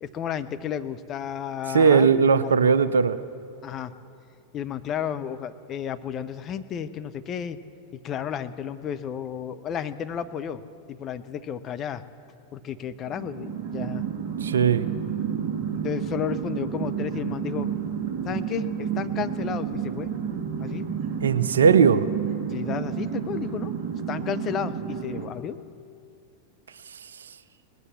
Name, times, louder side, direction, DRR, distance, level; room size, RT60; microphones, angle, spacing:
voice 1, 0.0-2.1 2.4-2.5 3.6-3.9 4.5-7.6 8.0-10.6 10.9-12.0 12.5-14.0 15.7-17.7 18.2-20.1 20.6-20.9 22.5-23.7 24.1-25.6, left 8 dB, 30° left, 10 dB, 0.6 m, -32 dB
voice 2, 1.7-3.2 14.4-14.9 21.2-22.0, right 6 dB, 70° right, 14 dB, 0.5 m, -18 dB
sound 1, 13.1-25.3, right 8 dB, 40° right, 1.3 m, -30 dB
19.0 x 8.3 x 7.3 m, 2.4 s
figure-of-eight pair, 90°, 0 cm